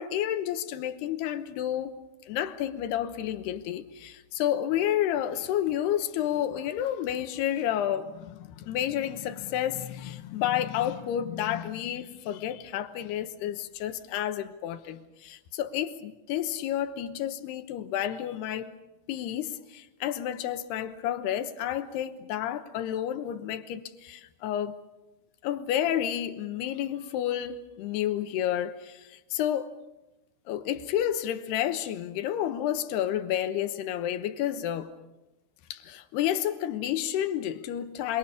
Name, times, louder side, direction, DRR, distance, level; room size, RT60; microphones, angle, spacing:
voice 1, 0.0-2.0 2.2-18.7 19.1-24.8 25.4-29.7 30.5-34.9 35.7-38.2, left 11 dB, 75° left, 2.6 m, -30 dB
28.0 x 23.0 x 7.1 m
omnidirectional pair, 5.7 m